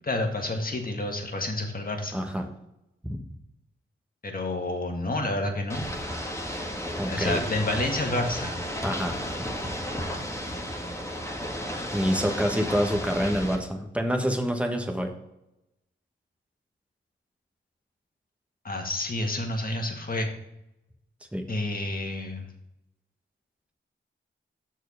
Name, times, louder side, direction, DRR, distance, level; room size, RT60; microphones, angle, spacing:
voice 1, 0.0-2.2 4.2-5.8 7.1-8.5 18.6-20.3 21.5-22.5, left 2 dB, 45° left, 2 dB, 1.7 m, -29 dB
voice 2, 2.1-2.5 3.0-3.2 7.0-7.4 8.8-9.5 11.9-15.1 21.3-21.4, equal, 5° right, 4 dB, 1.4 m, -27 dB
Ocean / Boat Water vehicle, 5.7-13.6, equal, 15° left, 1.9 m, -33 dB
6.4 x 4.5 x 6.4 m, 0.86 s
cardioid pair, 45°, 21 cm